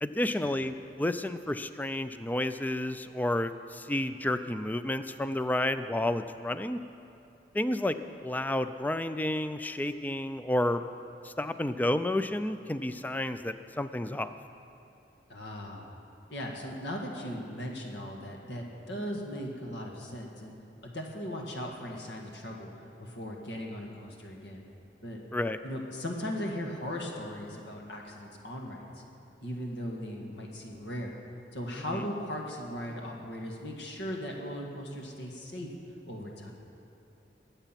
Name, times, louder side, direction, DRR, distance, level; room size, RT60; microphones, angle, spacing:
voice 1, 0.0-6.8 7.5-8.0 8.2-10.8 11.2-14.3 25.3-25.6 31.7-32.0, left 1 dB, 10° left, 11 dB, 0.3 m, -31 dB
voice 2, 15.3-15.9 16.3-20.5 20.8-24.6 25.0-25.2 25.6-29.0 29.4-31.2 31.5-35.7 36.0-36.5, equal, 75° left, 0 dB, 1.7 m, -38 dB
21.5 x 8.0 x 5.9 m, 2.8 s
head